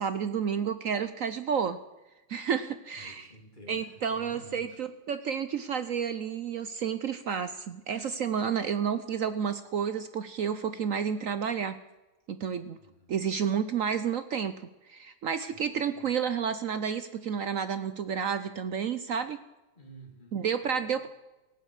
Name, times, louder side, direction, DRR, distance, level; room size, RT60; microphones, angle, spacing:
voice 1, 0.0-1.8 2.3-3.3 3.7-11.8 12.3-12.8 13.1-19.4 20.3-21.1, right 7 dB, 65° right, 12 dB, 0.8 m, -31 dB
voice 2, 2.9-4.8 12.8-13.2 15.5-16.1 19.8-20.9, right 1 dB, 25° left, 1 dB, 3.4 m, -52 dB
18.5 x 15.5 x 4.9 m, 1.0 s
omnidirectional pair, 2.1 m